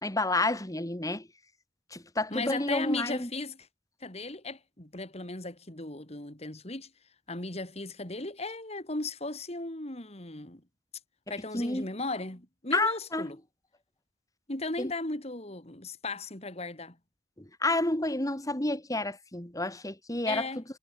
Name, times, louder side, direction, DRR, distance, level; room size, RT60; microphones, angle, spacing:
voice 1, 0.0-1.3 1.9-3.3 11.5-11.9 12.7-13.4 14.8-14.9 17.4-20.6, left 2 dB, 20° left, 3.1 m, -30 dB
voice 2, 2.3-3.7 4.0-6.9 7.3-10.6 11.3-13.4 14.5-17.0 20.3-20.6, left 2 dB, 40° left, 3.6 m, -36 dB
head